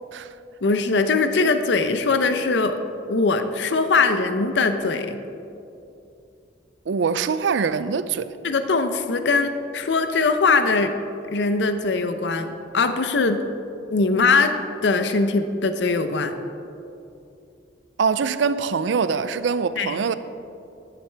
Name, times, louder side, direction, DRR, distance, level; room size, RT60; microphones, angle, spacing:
voice 1, 0.6-2.8 3.1-5.2 8.4-10.9 11.3-13.4 13.9-14.5 14.8-16.3 19.8-20.0, left 4 dB, 65° left, 0.6 m, -21 dB
voice 2, 6.9-8.3 18.0-20.1, right 5 dB, 75° right, 0.4 m, -23 dB
12.5 x 10.5 x 3.4 m
head